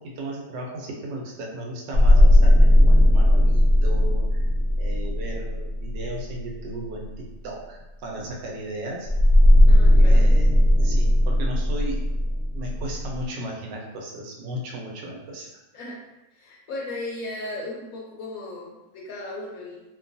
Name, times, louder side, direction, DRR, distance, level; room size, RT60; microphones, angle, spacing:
voice 1, 0.0-4.4 4.8-9.1 10.0-10.5 10.8-12.0 12.5-15.6, right 1 dB, 90° right, -1 dB, 1.3 m, -35 dB
sound 1, 1.9-6.3 9.1-13.2, left 1 dB, 65° right, 0.8 m, -17 dB
voice 2, 9.7-10.3 15.7-16.0 16.3-19.8, left 2 dB, 70° left, -3 dB, 0.9 m, -36 dB
3.0 x 2.2 x 2.5 m, 0.99 s
omnidirectional pair, 1.8 m